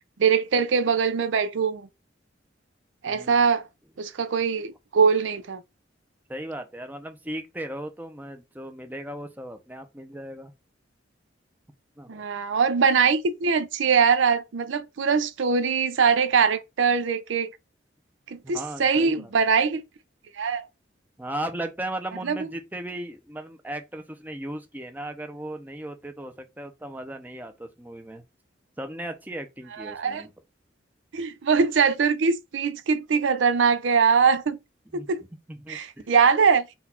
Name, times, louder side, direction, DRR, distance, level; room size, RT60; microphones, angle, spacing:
voice 1, 0.2-1.9 3.0-3.7 4.0-5.6 12.1-17.5 18.3-19.8 20.4-20.7 22.2-22.5 29.8-30.2 31.1-34.6 34.9-35.2 35.7-36.7, right 5 dB, 80° right, 0.5 m, -22 dB
voice 2, 3.1-3.5 6.3-10.5 12.0-12.2 18.4-19.3 21.2-28.2 28.8-30.3 34.9-35.1 35.5-36.1, right 1 dB, 10° right, 0.6 m, -36 dB
3.9 x 2.4 x 4.2 m
head